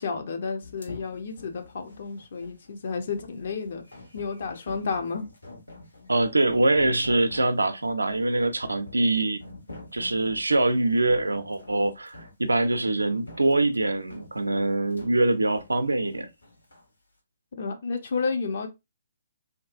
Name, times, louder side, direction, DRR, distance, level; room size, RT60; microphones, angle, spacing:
voice 1, 0.0-3.8 4.1-5.3 17.6-18.7, left 4 dB, 55° left, 0.6 m, -31 dB
sound 1, 0.6-16.9, left 2 dB, 75° left, 1.2 m, -47 dB
voice 2, 6.1-9.5 9.9-16.3, right 2 dB, 75° right, 0.4 m, -24 dB
2.6 x 2.2 x 2.5 m
figure-of-eight pair, 130°, 0 cm